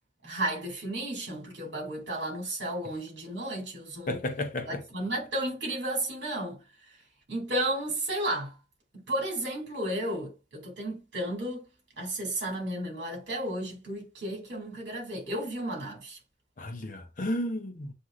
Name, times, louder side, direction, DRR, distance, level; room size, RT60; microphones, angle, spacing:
voice 1, 0.2-4.2 4.7-6.6 7.3-8.5 9.1-11.6 12.0-16.2, right 1 dB, 65° right, 2.4 m, -33 dB
voice 2, 4.1-4.8 16.6-17.9, left 1 dB, 45° left, 0.7 m, -32 dB
7.5 x 2.7 x 2.4 m
head